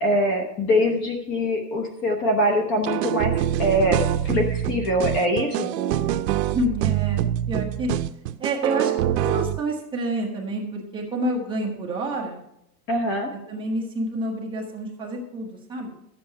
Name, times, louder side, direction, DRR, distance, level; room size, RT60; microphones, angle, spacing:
voice 1, 0.0-5.7 12.9-13.3, equal, 25° left, 3 dB, 0.9 m, -23 dB
sound 1, 2.9-9.6, right 12 dB, 75° right, 0.7 m, -25 dB
voice 2, 6.4-7.9 8.4-12.4 13.3-15.9, right 1 dB, 10° right, -3 dB, 1.1 m, -28 dB
12.0 x 7.8 x 4.5 m, 0.81 s
supercardioid pair, 170°, 49 cm